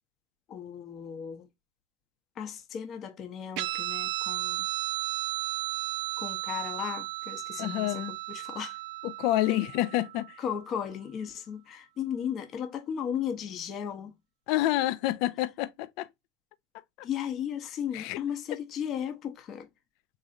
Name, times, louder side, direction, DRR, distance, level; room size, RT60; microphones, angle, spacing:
voice 1, 0.5-1.5 2.4-4.7 6.2-8.8 10.4-14.1 17.0-19.7, left 8 dB, 35° left, 0.9 m, -35 dB
Guitar, 3.6-10.5, right 17 dB, 55° right, 0.5 m, -34 dB
voice 2, 7.6-8.1 9.0-10.4 14.5-16.1 17.9-18.2, left 15 dB, 60° left, 0.5 m, -28 dB
3.9 x 3.1 x 2.5 m
supercardioid pair, 130°, 0 cm